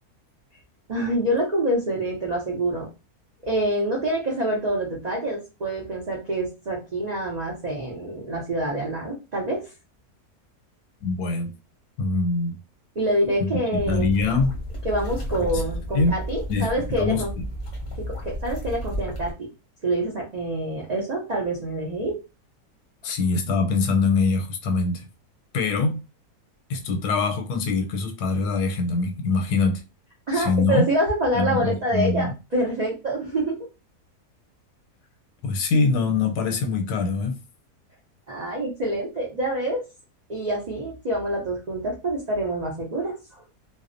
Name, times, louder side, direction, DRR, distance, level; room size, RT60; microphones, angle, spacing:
voice 1, 0.9-2.9 3.4-9.6 13.0-14.1 14.8-17.3 17.9-19.3 19.8-22.2 30.3-33.6 38.3-39.8 40.3-43.2, right 1 dB, 80° right, 0.3 m, -26 dB
voice 2, 11.0-11.5 12.0-12.6 13.9-14.6 15.5-15.7 15.9-16.1 16.5-16.7 17.0-17.2 23.0-25.0 25.5-26.0 26.7-29.8 30.3-30.9 31.3-32.3 35.4-37.4, left 4 dB, 85° left, 1.1 m, -23 dB
sound 1, 13.7-19.3, equal, 45° left, 0.6 m, -32 dB
2.6 x 2.0 x 2.5 m
omnidirectional pair, 1.7 m